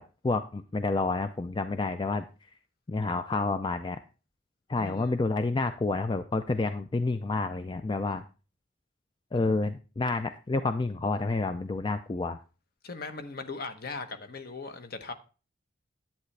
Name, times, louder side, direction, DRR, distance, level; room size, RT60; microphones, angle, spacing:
voice 1, 0.0-2.3 2.9-4.0 4.7-8.2 9.3-12.4, left 3 dB, 25° left, 0.4 m, -29 dB
voice 2, 4.8-5.1 12.8-15.1, left 3 dB, 50° left, 1.0 m, -39 dB
10.5 x 8.3 x 3.2 m
head